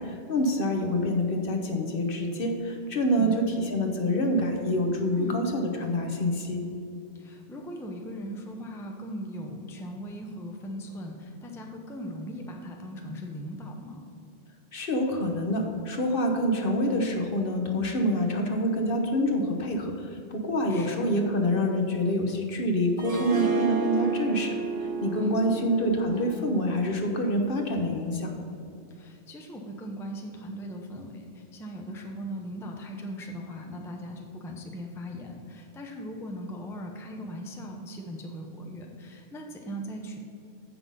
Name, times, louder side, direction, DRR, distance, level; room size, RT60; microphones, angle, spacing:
voice 1, 0.0-6.6 14.7-19.9 20.3-24.6 25.0-28.3, equal, 55° left, 3 dB, 1.0 m, -26 dB
voice 2, 7.1-14.0 20.7-21.1 25.1-25.6 28.9-40.2, equal, 5° left, 1 dB, 0.6 m, -39 dB
Harp, 23.0-28.0, right 4 dB, 85° right, 1.4 m, -33 dB
7.7 x 5.9 x 5.3 m, 2.5 s
omnidirectional pair, 1.2 m